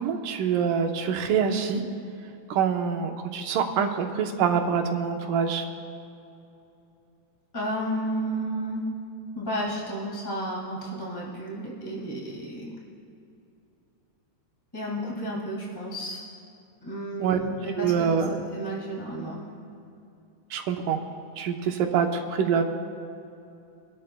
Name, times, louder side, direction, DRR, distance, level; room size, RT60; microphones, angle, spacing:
voice 1, 0.0-1.8 2.5-5.6 17.2-17.4 17.8-18.3 20.5-21.0 21.4-22.6, right 7 dB, 75° right, 3 dB, 2.4 m, -25 dB
voice 2, 7.5-8.9 9.3-12.7 14.7-16.2 16.8-19.4, right 1 dB, 10° left, -4 dB, 1.0 m, -32 dB
24.5 x 12.5 x 2.2 m, 2.7 s
omnidirectional pair, 3.9 m